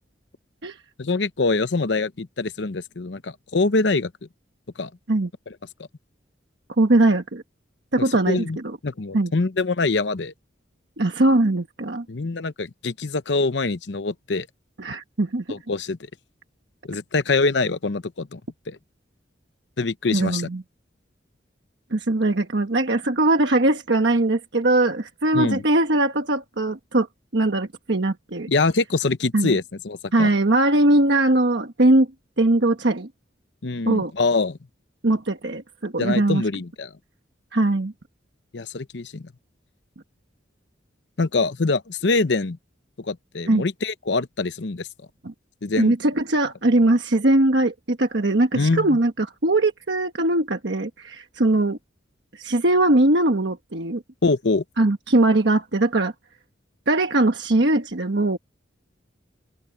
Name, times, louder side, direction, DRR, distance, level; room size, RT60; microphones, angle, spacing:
voice 1, 1.0-4.1 4.8-4.9 5.5-5.6 8.0-8.6 8.8-10.3 12.1-14.5 15.5-16.0 16.9-18.4 18.7-18.8 19.8-20.5 25.3-25.6 28.5-30.3 33.6-34.6 36.0-36.9 38.5-39.3 41.2-42.6 43.0-44.9 45.6-45.9 48.5-49.0 54.2-54.6, left 3 dB, 70° left, 0.8 m, -24 dB
voice 2, 6.8-7.4 7.9-8.8 9.1-9.3 11.0-12.0 14.8-15.4 20.1-20.6 21.9-27.1 27.3-28.5 29.3-29.6 30.1-32.1 32.4-33.1 33.9-34.1 35.0-36.4 37.5-37.9 43.5-43.6 45.2-45.3 45.8-51.8 52.3-54.0 54.8-56.1 56.9-58.4, right 2 dB, 65° right, 1.3 m, -20 dB
open air
head